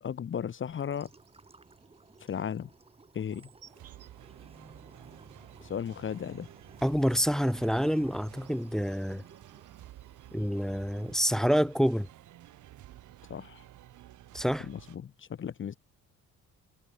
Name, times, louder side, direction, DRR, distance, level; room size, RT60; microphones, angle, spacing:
voice 1, 0.0-1.1 2.2-2.7 3.1-3.5 5.6-6.5 13.3-13.6 14.6-15.7, left 8 dB, 40° left, 0.9 m, -35 dB
sound 1, 0.7-11.1, right 3 dB, 20° right, 1.9 m, -56 dB
Insect, 0.9-14.0, right 8 dB, 55° right, 5.5 m, -66 dB
sound 2, 3.7-15.0, right 14 dB, 75° right, 1.6 m, -52 dB
voice 2, 6.8-9.2 10.3-12.1 14.3-14.7, equal, ahead, 0.5 m, -27 dB
cardioid pair, 90°, 30 cm